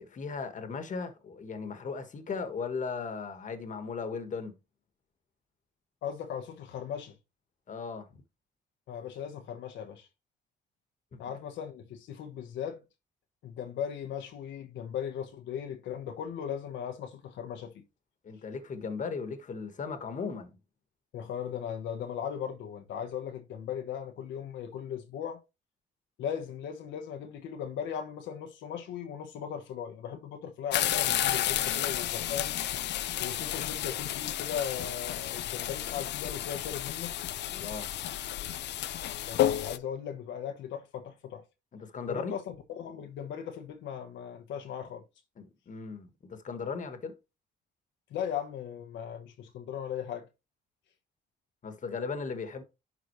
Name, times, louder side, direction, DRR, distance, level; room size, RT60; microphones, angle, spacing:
voice 1, 0.0-4.5 7.7-8.2 11.1-11.2 18.2-20.6 37.5-37.9 41.7-42.4 45.4-47.1 51.6-52.6, left 5 dB, 45° left, 1.4 m, -37 dB
voice 2, 6.0-7.2 8.9-10.1 11.2-12.8 13.4-17.8 21.1-25.4 26.2-32.6 33.2-37.2 39.3-41.4 42.1-45.0 48.1-50.3, left 8 dB, 85° left, 1.1 m, -38 dB
sound 1, 30.7-39.8, left 12 dB, 70° left, 0.5 m, -31 dB
11.0 x 4.0 x 3.1 m
cardioid pair, 115°, 19 cm